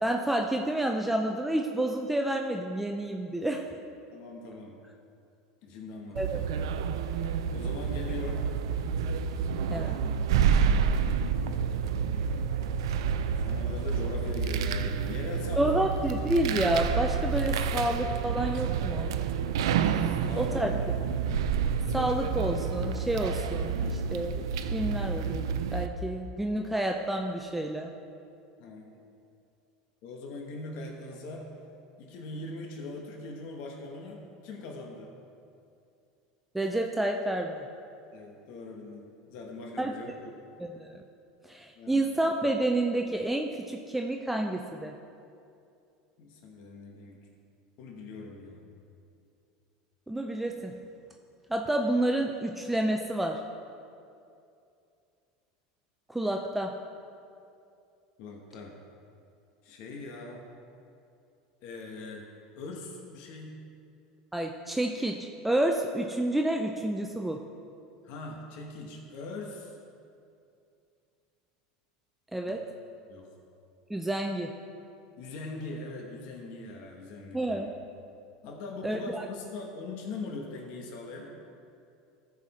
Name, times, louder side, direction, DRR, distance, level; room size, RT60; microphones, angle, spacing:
voice 1, 0.0-3.7 6.2-6.4 9.7-9.9 15.6-19.1 20.4-20.7 21.9-24.4 24.7-25.4 25.7-27.9 36.5-37.7 39.8-39.9 40.6-41.0 41.4-44.9 50.1-50.7 51.5-53.4 56.1-56.7 64.3-67.4 72.3-72.6 73.9-74.5 77.3-77.7 78.8-79.3, right 1 dB, 5° right, 2 dB, 0.5 m, -29 dB
voice 2, 4.1-4.8 5.6-6.5 7.5-8.5 9.7-11.4 13.4-15.8 19.9-20.7 28.6-28.8 30.0-31.5 32.0-35.1 38.1-40.3 41.8-42.1 46.2-47.2 47.8-48.7 58.2-58.8 59.6-60.5 61.6-62.3 62.6-63.6 68.0-69.8 72.5-72.6 73.1-73.3 75.2-77.7 78.4-81.3, left 2 dB, 60° left, 1 dB, 1.1 m, -41 dB
sound 1, 6.2-25.9, right 6 dB, 85° right, 0.4 m, -29 dB
13.5 x 5.0 x 4.2 m, 2.6 s
supercardioid pair, 110°, 3 cm